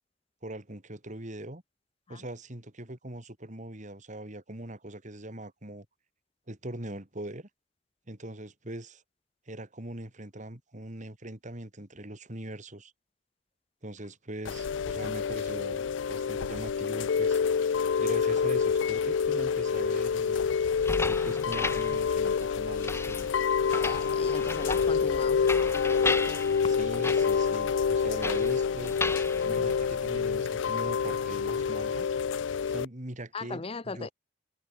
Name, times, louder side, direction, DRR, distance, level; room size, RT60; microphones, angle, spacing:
voice 1, 0.4-1.6 2.1-5.8 6.5-7.5 8.1-9.0 9.5-12.9 13.8-17.4 18.0-20.5 21.1-23.3 26.6-28.9 29.4-32.1 32.7-34.1, right 1 dB, 40° right, 3.1 m, -41 dB
Chime / Rain, 14.4-32.8, left 6 dB, 80° left, 0.4 m, -27 dB
sound 1, 20.7-30.4, left 2 dB, 15° left, 2.2 m, -36 dB
voice 2, 23.8-25.4 33.3-34.1, left 4 dB, 30° left, 0.7 m, -37 dB
open air
head